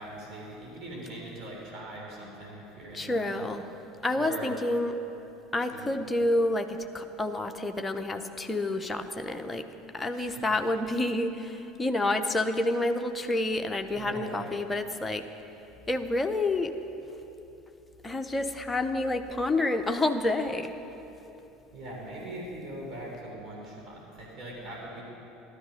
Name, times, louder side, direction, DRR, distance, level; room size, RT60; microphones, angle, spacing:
voice 1, 0.0-3.5 4.1-4.5 5.7-6.1 10.1-10.4 13.9-14.5 21.7-25.0, right 1 dB, 40° right, -3 dB, 3.4 m, -41 dB
voice 2, 2.9-3.7 4.0-4.9 5.5-9.7 9.9-15.2 15.9-16.7 18.0-20.7, left 2 dB, 15° left, 5 dB, 0.8 m, -29 dB
13.5 x 12.0 x 5.3 m, 3.0 s
figure-of-eight pair, 70°, 0 cm